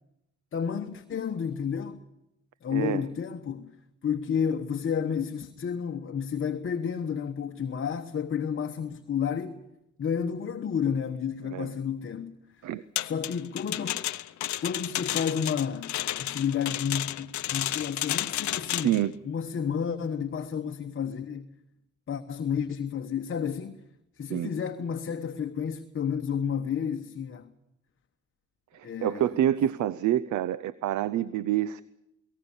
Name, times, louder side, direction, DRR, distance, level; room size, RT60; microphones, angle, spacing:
voice 1, 0.5-2.0 2.6-3.7 4.0-9.6 10.0-12.3 13.0-14.0 14.6-19.0 19.2-21.5 22.1-23.8 24.2-27.5 28.8-29.3, left 7 dB, 45° left, 1.1 m, -31 dB
voice 2, 2.7-3.0 11.5-11.7 12.6-12.8 18.8-19.1 24.3-24.5 28.7-31.8, right 11 dB, 75° right, 0.7 m, -27 dB
sound 1, 13.0-19.0, left 14 dB, 70° left, 0.8 m, -32 dB
23.0 x 18.5 x 7.1 m
cardioid pair, 90°, 30 cm